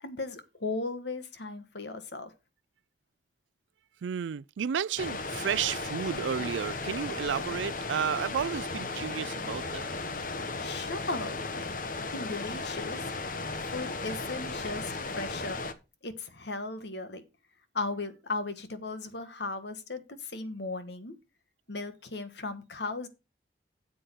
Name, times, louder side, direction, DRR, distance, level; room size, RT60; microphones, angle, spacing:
voice 1, 0.0-2.3 10.3-11.7 12.1-13.1 13.6-15.6 16.0-17.2 17.7-21.1 21.7-23.1, left 3 dB, 70° left, 1.5 m, -37 dB
voice 2, 4.0-9.9, right 8 dB, 90° right, 0.4 m, -32 dB
sound 1, 5.0-15.7, left 3 dB, 45° left, 1.0 m, -35 dB
8.2 x 7.7 x 4.5 m
head